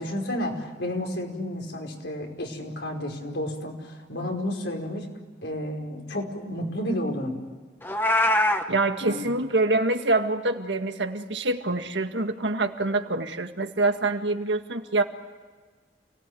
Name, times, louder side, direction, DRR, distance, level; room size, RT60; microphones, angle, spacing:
voice 1, 0.0-5.1 5.4-7.4 9.0-9.3, left 1 dB, 80° left, 2 dB, 5.2 m, -31 dB
Meow, 7.8-8.6, left 1 dB, 10° left, 1.5 m, -22 dB
voice 2, 8.7-15.0, right 2 dB, 90° right, 6 dB, 1.9 m, -25 dB
29.0 x 19.0 x 9.5 m, 1.4 s
head